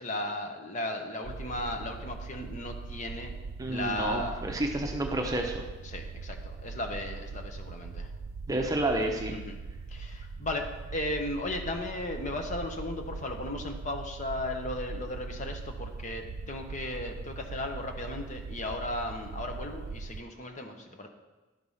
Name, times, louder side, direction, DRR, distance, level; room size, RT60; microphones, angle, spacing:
voice 1, 0.0-3.4 3.7-4.4 5.8-8.1 9.3-9.6 9.9-21.1, left 1 dB, 35° left, 4 dB, 0.8 m, -36 dB
sound 1, 1.2-20.2, right 4 dB, 75° right, 0.4 m, -41 dB
voice 2, 3.6-5.6 8.5-9.3, right 1 dB, 15° right, 2 dB, 0.7 m, -30 dB
11.5 x 4.7 x 5.5 m, 1.2 s
head